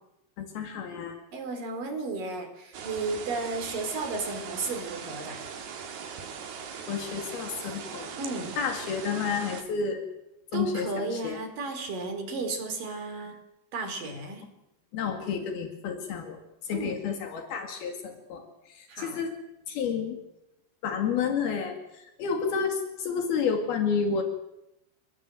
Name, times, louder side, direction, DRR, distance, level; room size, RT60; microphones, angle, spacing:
voice 1, 0.4-1.2 6.9-8.1 8.6-10.0 10.5-11.4 14.9-18.4 18.7-19.4 19.7-20.2 20.8-24.2, left 6 dB, 80° left, 5 dB, 4.3 m, -30 dB
voice 2, 1.3-5.4 8.2-8.6 10.5-13.4 13.7-14.4 16.7-17.0 18.9-19.2, right 3 dB, 60° right, 7 dB, 5.5 m, -33 dB
sound 1, 2.7-9.6, right 6 dB, 80° right, 4.5 m, -40 dB
29.5 x 20.5 x 7.8 m, 0.90 s
omnidirectional pair, 4.3 m